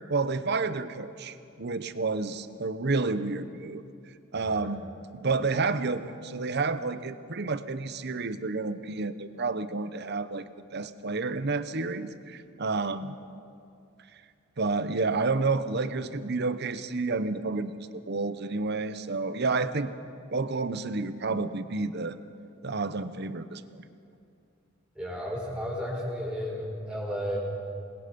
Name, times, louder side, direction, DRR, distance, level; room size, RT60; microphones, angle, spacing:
voice 1, 0.1-3.8 4.3-4.9 5.1-13.2 14.6-19.9 20.3-22.2 22.6-23.8, right 3 dB, 55° right, 12 dB, 0.9 m, -30 dB
voice 2, 4.4-4.7 24.9-27.4, equal, 5° right, -4 dB, 5.1 m, -33 dB
27.0 x 20.5 x 5.4 m, 2.5 s
head